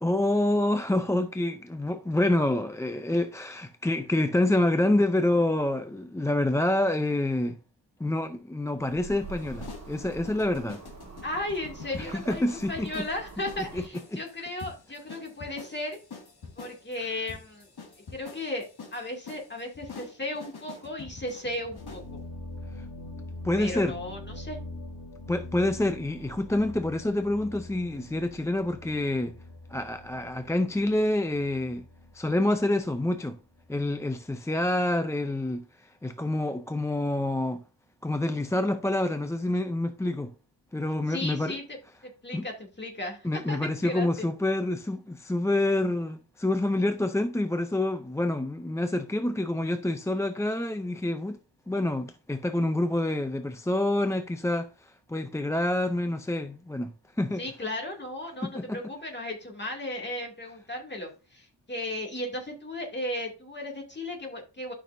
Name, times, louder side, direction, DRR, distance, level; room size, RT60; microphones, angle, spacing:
voice 1, 0.0-7.6 8.0-10.8 11.9-13.1 13.6-13.8 14.1-14.2 22.7-22.9 23.4-24.0 25.3-29.4 29.7-31.8 32.1-33.4 33.7-37.6 38.0-40.3 40.7-41.6 42.3-42.5 43.2-51.4 51.7-57.4 58.4-58.8, left 1 dB, 5° left, 0.4 m, -27 dB
sound 1, 8.8-13.9, right 4 dB, 35° right, 1.5 m, -45 dB
sound 2, 9.4-22.1, left 4 dB, 55° left, 2.2 m, -46 dB
voice 2, 11.2-12.4 12.7-16.0 16.6-17.7 18.1-22.2 23.6-24.6 41.1-41.6 42.0-44.3 57.4-64.7, left 1 dB, 25° left, 2.4 m, -35 dB
sound 3, 21.8-34.1, left 1 dB, 75° left, 3.2 m, -44 dB
12.0 x 6.0 x 2.6 m
wide cardioid pair, 130°, 45 cm